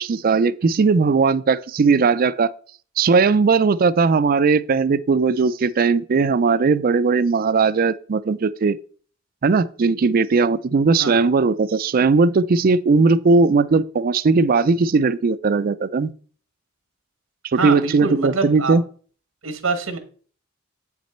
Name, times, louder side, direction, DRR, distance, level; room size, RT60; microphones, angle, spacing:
voice 1, 0.0-2.5 3.0-8.8 9.4-16.1 17.5-18.8, right 4 dB, 45° right, 0.4 m, -18 dB
voice 2, 17.5-18.8 19.4-20.0, right 4 dB, 90° right, 1.1 m, -25 dB
8.1 x 6.0 x 4.3 m
head